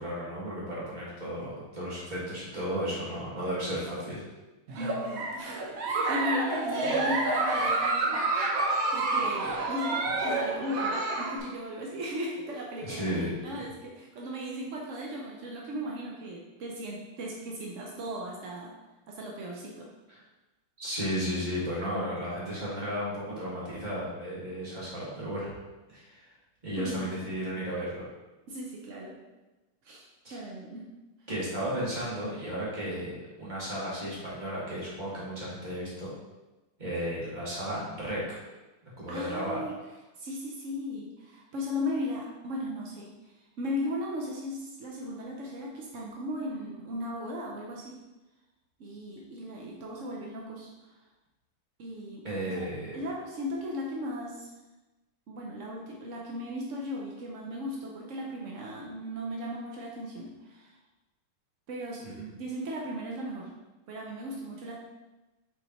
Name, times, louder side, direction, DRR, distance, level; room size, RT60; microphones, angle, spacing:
voice 1, 0.0-4.2 12.8-13.3 20.1-20.2 20.8-25.6 25.9-26.2 26.6-28.0 30.2-30.4 31.3-36.1 36.8-38.2 38.8-39.6 52.2-53.0 62.0-62.3, equal, 20° right, -7 dB, 2.0 m, -34 dB
Giggle, 4.7-11.4, right 2 dB, 55° right, 1.0 m, -28 dB
voice 2, 4.7-8.2 8.9-18.7 19.1-19.9 26.8-27.1 28.5-29.1 29.8-30.0 30.3-30.9 39.1-39.7 40.2-48.0 48.8-51.0 51.8-52.2 52.6-52.7 52.9-54.5 55.3-60.8 61.7-63.5 63.9-64.8, left 1 dB, 75° right, -2 dB, 0.7 m, -37 dB
5.6 x 4.3 x 4.3 m, 1.1 s
omnidirectional pair, 2.4 m